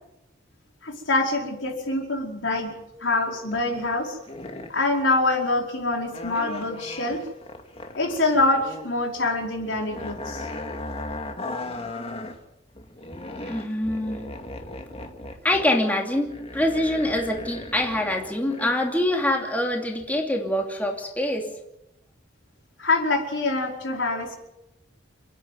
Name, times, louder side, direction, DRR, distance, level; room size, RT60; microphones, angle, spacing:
voice 1, 0.8-2.7 3.0-4.2 4.7-7.2 7.9-10.5 22.8-24.4, left 2 dB, 70° left, 1 dB, 4.9 m, -25 dB
sound 1, 3.3-3.9 4.2-4.9 6.1-8.9 9.2-12.4 12.7-18.8 19.2-19.3, left 2 dB, 35° left, 2.2 m, -37 dB
voice 2, 13.4-14.2 15.4-21.5, left 1 dB, 10° left, 1 dB, 2.7 m, -25 dB
29.0 x 10.0 x 9.5 m, 0.89 s
head